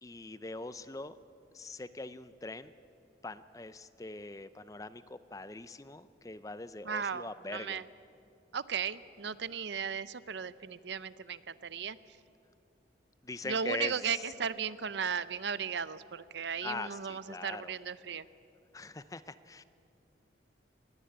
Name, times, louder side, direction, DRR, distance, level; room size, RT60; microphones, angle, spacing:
voice 1, 0.0-1.2 1.5-2.7 3.2-7.8 13.2-14.2 16.6-17.7 18.7-19.6, left 2 dB, 20° left, 14 dB, 0.5 m, -42 dB
voice 2, 6.8-7.8 8.5-12.0 13.4-18.3, right 6 dB, 70° right, 16 dB, 0.6 m, -36 dB
20.5 x 17.0 x 8.7 m, 2.6 s
head